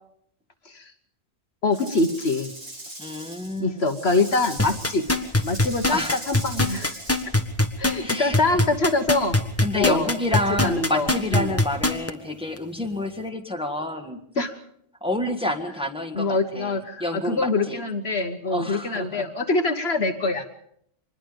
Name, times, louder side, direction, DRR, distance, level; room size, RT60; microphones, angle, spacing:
voice 1, 1.6-2.5 3.6-5.0 5.4-6.9 7.8-9.4 9.7-10.1 10.6-11.5 14.4-14.6 16.1-20.5, left 3 dB, 55° left, 7 dB, 1.4 m, -24 dB
Rattle / Rattle (instrument), 1.7-7.3, right 1 dB, 80° right, 5.1 m, -40 dB
voice 2, 3.0-3.8 5.9-6.2 8.0-8.6 9.6-14.2 15.0-17.8 18.5-19.3, left 1 dB, 5° right, 3 dB, 1.7 m, -29 dB
sound 1, 4.6-12.1 12.6-12.7, left 2 dB, 10° left, 1.2 m, -21 dB
24.5 x 20.5 x 5.2 m, 0.69 s
omnidirectional pair, 1.3 m